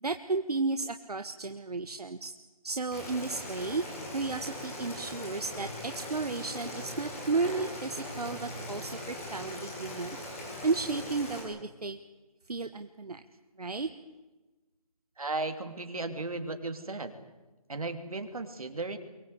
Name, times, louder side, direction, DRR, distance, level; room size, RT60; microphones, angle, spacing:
voice 1, 0.0-2.3 2.6-3.8 4.1-10.2 10.6-12.0 12.5-13.2 13.6-13.9, right 3 dB, 85° right, 8 dB, 1.4 m, -33 dB
Boiling, 2.9-11.4, left 1 dB, 25° left, 6.4 m, -40 dB
voice 2, 15.2-17.1 17.7-19.0, right 3 dB, 70° right, 7 dB, 3.2 m, -35 dB
23.5 x 19.5 x 8.3 m, 1.1 s
figure-of-eight pair, 175°, 19 cm